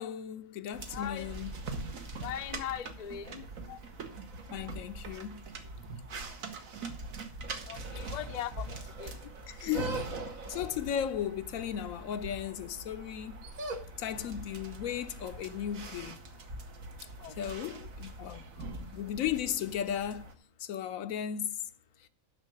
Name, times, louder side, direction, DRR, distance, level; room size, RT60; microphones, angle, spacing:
voice 1, 0.0-1.5 3.7-3.8 4.5-5.4 9.5-10.0 10.5-13.5 14.0-16.2 17.4-18.4 18.8-20.3 20.6-21.6, left 9 dB, 80° left, 1.1 m, -35 dB
sound 1, 0.7-20.3, right 2 dB, 80° right, 1.6 m, -42 dB
voice 2, 0.9-1.3 2.2-3.4 7.7-9.1 17.2-17.9, left 10 dB, 50° left, 0.5 m, -40 dB
7.3 x 6.3 x 7.7 m
omnidirectional pair, 1.4 m